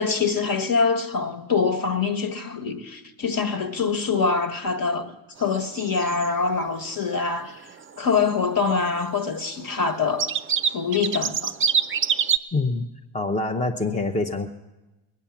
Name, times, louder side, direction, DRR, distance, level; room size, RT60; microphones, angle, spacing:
voice 1, 0.0-7.6 8.0-10.3 10.7-11.5, left 5 dB, 45° left, 1.6 m, -24 dB
sound 1, 5.4-6.3 6.5-6.6 6.8-7.1 7.4-7.5 7.7-8.4 8.7-9.5 9.9-10.0 10.2-12.4, right 7 dB, 25° right, 0.5 m, -25 dB
voice 2, 12.5-12.9 13.1-14.5, left 3 dB, 15° left, 0.8 m, -25 dB
20.5 x 9.3 x 7.2 m
cardioid pair, 90°, 49 cm